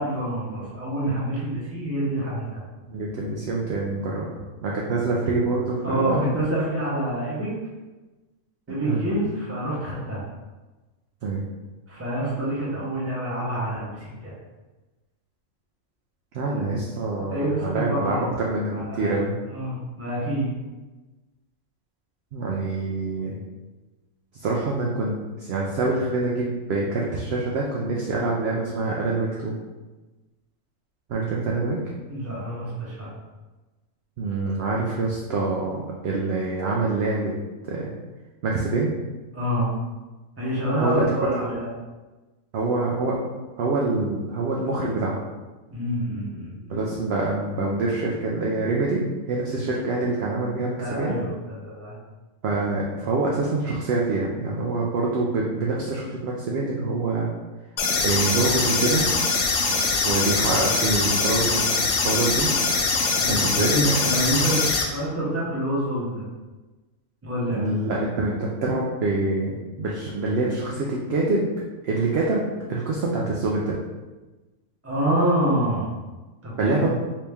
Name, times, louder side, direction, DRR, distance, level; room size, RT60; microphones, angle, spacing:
voice 1, 0.0-2.6 5.8-7.5 8.7-10.2 11.9-14.3 17.3-18.3 18.7-19.2 19.5-20.5 32.1-33.1 39.3-39.7 40.4-41.7 45.7-46.8 50.8-52.0 60.6-60.9 63.2-66.2 67.2-67.7 74.8-75.9 76.4-76.9, right 1 dB, 10° right, -7 dB, 0.8 m, -27 dB
voice 2, 2.9-4.3 4.6-6.2 8.7-9.1 11.2-11.4 16.3-19.3 22.3-23.4 24.4-29.6 31.1-31.8 34.2-37.3 37.7-37.9 38.4-38.9 40.8-41.0 42.5-43.2 43.6-45.2 46.7-51.2 52.4-57.3 58.0-59.0 60.0-62.5 63.3-63.8 67.6-71.5 71.8-72.4 72.7-73.8 76.6-76.9, right 3 dB, 65° right, -3 dB, 0.7 m, -25 dB
sound 1, 57.8-64.8, left 4 dB, 65° left, 0.7 m, -23 dB
3.1 x 2.8 x 3.4 m, 1.2 s
omnidirectional pair, 1.4 m